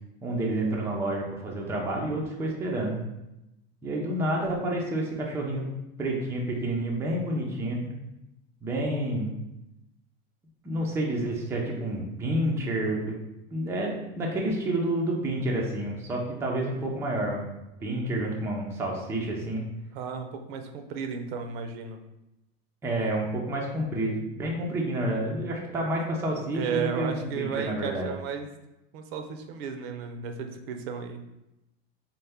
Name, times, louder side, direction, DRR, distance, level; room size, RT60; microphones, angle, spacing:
voice 1, 0.2-3.0 3.8-5.6 6.0-7.9 8.6-9.4 10.6-13.2 13.5-19.6 22.8-28.1, right 1 dB, 10° right, -2 dB, 0.4 m, -29 dB
voice 2, 19.9-22.0 25.7-25.8 26.5-28.5 28.9-31.2, right 6 dB, 70° right, 6 dB, 0.6 m, -34 dB
4.3 x 2.1 x 3.4 m, 0.92 s
supercardioid pair, 145°, 31 cm